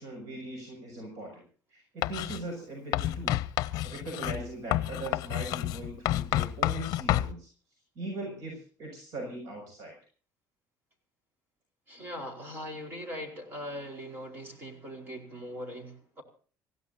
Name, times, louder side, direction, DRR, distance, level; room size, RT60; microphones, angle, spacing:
voice 1, 0.0-1.4 1.7-3.4 3.8-7.5 7.9-9.9, right 2 dB, 65° right, 2 dB, 6.5 m, -40 dB
Writing, 2.0-2.4 2.9-7.3, left 15 dB, 70° left, 0.6 m, -29 dB
voice 2, 11.9-16.2, equal, 35° right, 3 dB, 4.6 m, -40 dB
26.5 x 16.0 x 2.8 m, 0.41 s
cardioid pair, 180°, 7 cm